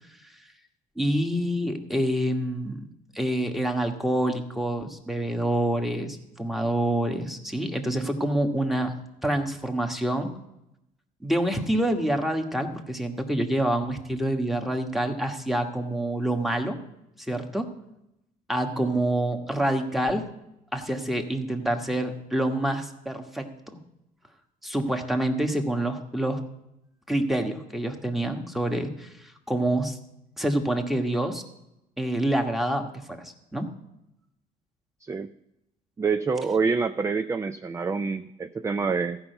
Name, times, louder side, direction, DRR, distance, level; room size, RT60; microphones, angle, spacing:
voice 1, 1.0-2.9 3.1-8.9 9.2-10.3 11.2-16.8 17.3-17.7 18.5-20.3 20.7-23.8 24.6-26.4 27.1-30.0 30.4-31.4 32.0-33.7, right 1 dB, ahead, 4 dB, 1.3 m, -27 dB
voice 2, 36.0-39.2, right 4 dB, 15° right, 10 dB, 0.4 m, -26 dB
14.5 x 5.6 x 7.9 m, 0.86 s
cardioid pair, 110°, 17 cm